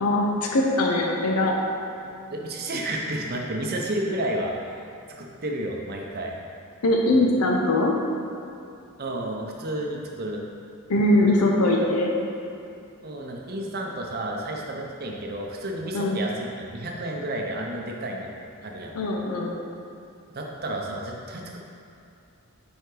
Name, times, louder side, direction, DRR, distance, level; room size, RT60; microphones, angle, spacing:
voice 1, 0.0-1.5 6.8-7.9 10.9-12.1 15.9-16.2 18.9-19.5, left 1 dB, 80° left, 0 dB, 0.6 m, -21 dB
voice 2, 2.3-4.5 5.0-6.3 9.0-10.4 13.0-18.3 18.6-19.0 20.3-21.6, right 1 dB, 45° right, 0 dB, 0.6 m, -31 dB
5.5 x 4.5 x 3.8 m, 2.7 s
head